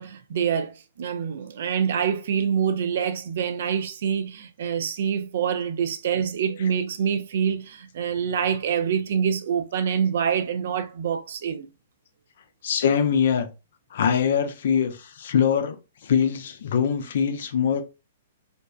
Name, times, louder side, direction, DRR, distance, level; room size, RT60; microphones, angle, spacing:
voice 1, 0.0-11.7, right 7 dB, 60° right, 0.3 m, -26 dB
voice 2, 12.6-13.5 13.9-17.8, left 7 dB, 60° left, 0.4 m, -23 dB
2.6 x 2.1 x 2.3 m
figure-of-eight pair, 110°, 0 cm